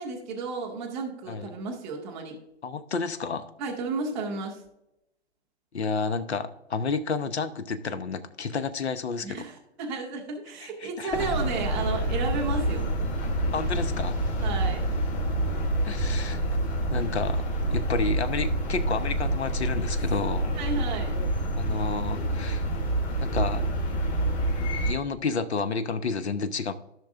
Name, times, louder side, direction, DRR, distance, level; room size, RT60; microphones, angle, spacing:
voice 1, 0.0-2.4 3.6-4.6 9.2-12.9 14.4-14.9 20.5-21.1, right 4 dB, 5° right, -7 dB, 0.3 m, -33 dB
voice 2, 2.6-3.5 5.7-9.4 10.8-11.2 13.5-14.1 15.8-16.4 16.9-17.4 17.7-20.5 21.6-22.7 23.2-23.6 24.8-26.7, left 4 dB, 75° left, 11 dB, 0.9 m, -30 dB
sound 1, 11.1-24.9, right 1 dB, 25° left, 1.8 m, -27 dB
14.5 x 6.1 x 2.5 m, 0.84 s
hypercardioid pair, 135°, 33 cm